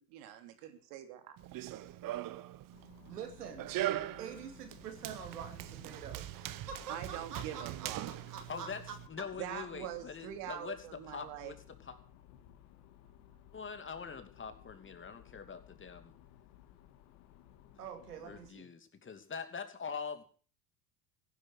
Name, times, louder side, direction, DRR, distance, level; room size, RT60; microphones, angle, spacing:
voice 1, 0.0-1.4 6.9-8.1 9.3-11.5, right 11 dB, 65° right, 7 dB, 3.0 m, -44 dB
Run, 1.4-9.1, right 14 dB, 45° right, 1.1 m, -41 dB
sound 1, 2.7-18.5, left 12 dB, 60° left, 2.3 m, -59 dB
voice 2, 3.1-3.8 4.2-9.3 17.8-18.7, right 7 dB, 90° right, 7 dB, 2.6 m, -46 dB
voice 3, 8.5-8.8 9.1-10.8 11.1-11.5 11.8-12.0 13.5-16.1 18.2-20.2, left 6 dB, 25° left, 8 dB, 2.7 m, -43 dB
16.0 x 10.5 x 6.4 m, 0.42 s
hypercardioid pair, 80°, 46 cm